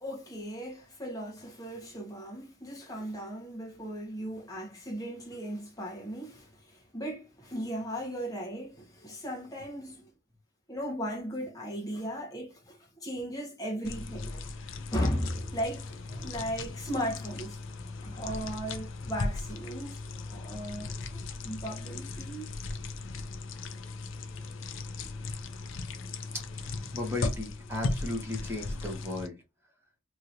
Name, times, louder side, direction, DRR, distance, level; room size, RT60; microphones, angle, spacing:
voice 1, 0.0-10.1 10.7-14.4 14.9-17.6 17.8-20.0 20.2-22.5, equal, 15° left, 1.0 m, -37 dB
sound 1, 13.8-29.3, left 3 dB, 65° left, 0.5 m, -37 dB
voice 2, 26.6-29.4, left 2 dB, 10° right, 1.1 m, -36 dB
3.0 x 2.7 x 2.5 m
head